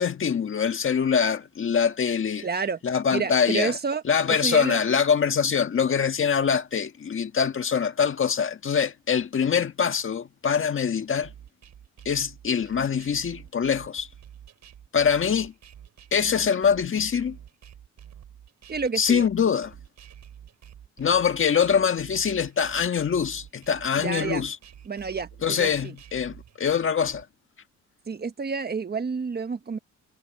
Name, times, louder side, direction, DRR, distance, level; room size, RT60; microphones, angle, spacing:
voice 1, 0.0-2.5 2.8-3.8 4.0-11.3 12.0-14.1 14.9-15.5 16.1-17.4 18.9-19.7 21.0-24.5 25.4-27.2, left 7 dB, 45° left, 1.6 m, -24 dB
voice 2, 2.4-2.8 3.1-4.0 4.4-4.8 18.7-19.3 24.0-24.4 24.9-25.9 28.1-29.8, right 5 dB, 30° right, 1.4 m, -29 dB
sound 1, 11.2-27.2, right 9 dB, 65° right, 6.6 m, -48 dB
cardioid pair, 90°, 30 cm